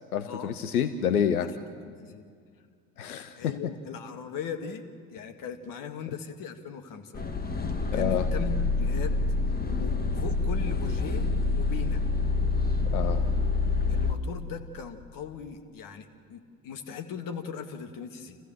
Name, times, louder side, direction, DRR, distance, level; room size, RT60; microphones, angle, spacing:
voice 1, 0.1-1.5 3.0-3.5 7.9-8.3 12.9-13.3, left 8 dB, 90° left, 11 dB, 0.9 m, -28 dB
voice 2, 1.8-2.2 3.4-4.8 5.1-7.2 7.9-9.2 9.6-12.0 13.9-18.4, left 7 dB, 50° left, 7 dB, 2.2 m, -39 dB
sound 1, 7.1-14.1, left 3 dB, 20° left, 1.8 m, -27 dB
28.5 x 15.0 x 7.5 m, 2.1 s
hypercardioid pair, 75°, 43 cm